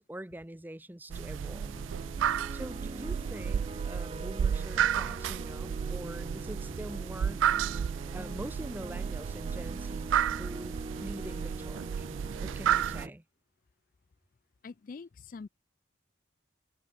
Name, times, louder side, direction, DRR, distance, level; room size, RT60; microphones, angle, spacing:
voice 1, 0.0-1.7 2.5-7.5 8.1-12.1 12.4-13.2, right 1 dB, 10° right, 0.6 m, -44 dB
sound 1, 1.1-13.1, right 1 dB, 30° right, 0.9 m, -43 dB
sound 2, 1.1-13.1, right 9 dB, 85° right, 0.3 m, -32 dB
voice 2, 14.6-15.5, left 4 dB, 45° left, 0.4 m, -44 dB
head